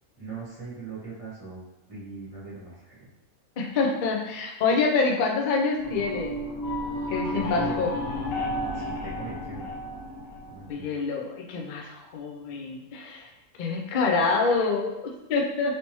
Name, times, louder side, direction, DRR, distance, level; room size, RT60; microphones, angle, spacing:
voice 1, 0.2-1.6 1.9-3.1 7.3-7.8 8.7-9.7 10.5-10.9, right 3 dB, 25° right, -7 dB, 0.8 m, -40 dB
voice 2, 3.6-6.4 7.1-7.9 10.7-13.3 13.6-15.7, left 4 dB, 90° left, 1 dB, 0.4 m, -26 dB
sound 1, 5.8-10.8, left 1 dB, 65° left, 1.1 m, -32 dB
3.3 x 2.8 x 3.0 m, 0.95 s
omnidirectional pair, 1.5 m